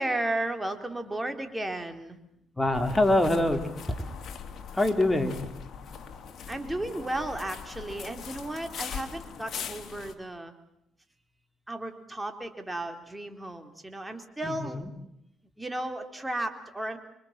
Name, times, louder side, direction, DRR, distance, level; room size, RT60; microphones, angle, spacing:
voice 1, 0.0-2.2 6.5-10.5 11.7-14.8 15.6-17.0, right 1 dB, 10° right, 6 dB, 3.6 m, -34 dB
voice 2, 2.6-3.6 4.7-5.4 14.4-14.9, left 1 dB, 10° left, 6 dB, 3.2 m, -24 dB
sound 1, 2.7-10.1, left 7 dB, 60° left, 3.2 m, -41 dB
26.5 x 24.0 x 7.4 m, 0.78 s
cardioid pair, 90°, 0 cm